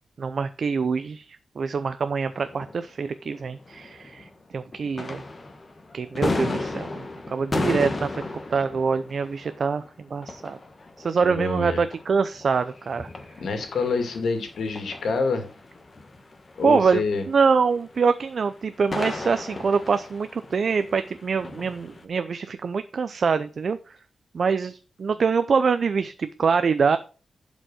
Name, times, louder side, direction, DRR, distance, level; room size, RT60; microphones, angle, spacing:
voice 1, 0.2-4.3 4.5-5.2 5.9-8.2 8.5-10.6 11.0-13.1 16.6-23.8 24.3-27.0, right 5 dB, 50° right, 11 dB, 0.5 m, -24 dB
sound 1, 2.3-4.4 4.7-22.0, left 2 dB, 25° left, 1.4 m, -35 dB
voice 2, 11.2-11.8 13.4-15.4 16.6-17.3, left 4 dB, 80° left, 6 dB, 2.3 m, -27 dB
11.5 x 5.2 x 6.3 m, 0.37 s
wide cardioid pair, 160°, 0 cm